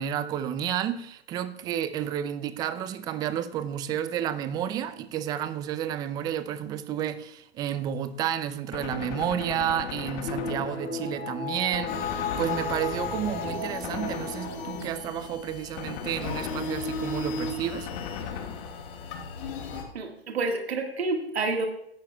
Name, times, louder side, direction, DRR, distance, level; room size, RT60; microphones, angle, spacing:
voice 1, 0.0-17.9, right 10 dB, 15° right, 13 dB, 0.4 m, -31 dB
Gunshot gunfire, 8.7-11.2 11.7-13.1 13.8-14.9 15.8-17.1 17.9-19.1, left 7 dB, 40° left, 1.5 m, -38 dB
sound 1, 10.3-16.2 16.5-16.6, left 4 dB, 85° left, 3.5 m, -35 dB
sound 2, 11.9-19.8, left 3 dB, 55° left, 2.8 m, -36 dB
voice 2, 19.9-21.7, right 3 dB, 75° right, 3 dB, 1.8 m, -29 dB
17.0 x 11.5 x 2.3 m, 0.74 s
hypercardioid pair, 125°, 32 cm